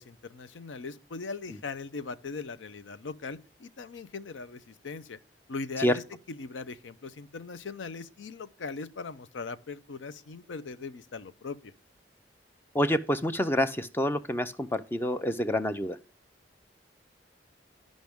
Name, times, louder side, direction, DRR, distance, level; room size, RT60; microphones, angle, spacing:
voice 1, 0.0-5.2 5.5-6.0 6.3-11.7, left 4 dB, 90° left, 0.6 m, -39 dB
voice 2, 12.7-16.0, left 1 dB, 10° left, 0.4 m, -27 dB
11.5 x 5.2 x 3.5 m
head